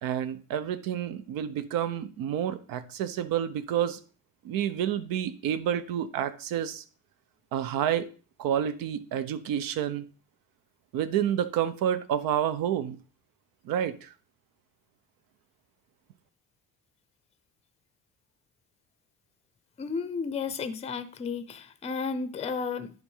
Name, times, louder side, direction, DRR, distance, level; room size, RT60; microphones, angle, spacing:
voice 1, 0.0-4.0 4.4-6.8 7.5-8.1 8.4-10.0 10.9-13.0 13.6-14.1, right 10 dB, 75° right, 0.9 m, -29 dB
voice 2, 19.8-22.9, left 5 dB, 20° left, 0.6 m, -33 dB
10.5 x 3.7 x 5.6 m
cardioid pair, 150°, 35 cm